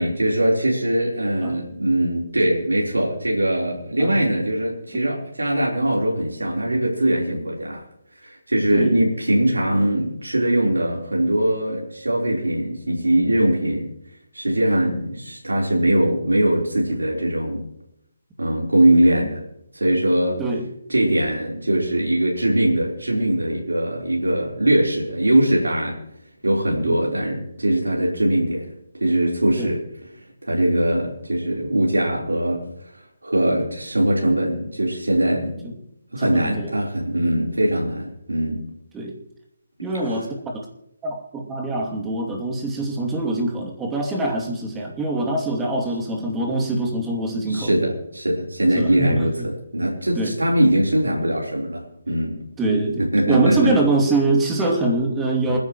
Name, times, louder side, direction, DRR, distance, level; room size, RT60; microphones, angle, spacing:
voice 1, 0.0-7.8 8.2-13.9 14.3-17.6 18.4-19.4 19.7-20.4 20.9-26.0 26.4-28.7 29.0-29.8 30.4-32.7 33.2-35.7 36.1-38.7 47.5-52.4 53.0-53.8 55.4-55.6, right 1 dB, 80° right, -2 dB, 4.0 m, -21 dB
voice 2, 36.2-36.7 38.9-39.1 39.8-40.3 41.0-47.7 48.7-49.3 50.2-50.3 52.1-52.2 52.6-55.6, right 2 dB, 10° right, 0 dB, 2.7 m, -24 dB
28.5 x 10.5 x 3.1 m, 0.78 s
figure-of-eight pair, 145°, 0 cm